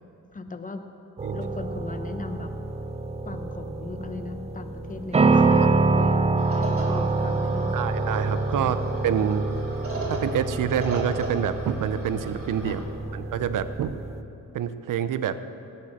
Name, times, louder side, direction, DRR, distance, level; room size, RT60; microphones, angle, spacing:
voice 1, 0.3-0.8 1.3-2.5 3.2-7.9 8.6-8.7 12.6-13.2, left 3 dB, 25° left, 7 dB, 1.0 m, -38 dB
sound 1, 1.2-14.2, right 3 dB, 20° right, 0.5 m, -26 dB
voice 2, 5.3-5.7 6.9-7.0 7.7-8.8 9.0-9.5 10.1-12.8 13.1-13.9 14.5-15.3, right 9 dB, 80° right, 12 dB, 0.7 m, -27 dB
sound 2, 6.4-12.8, right 1 dB, 45° right, 3.3 m, -37 dB
18.0 x 7.6 x 6.5 m, 2.8 s
cardioid pair, 110°, 32 cm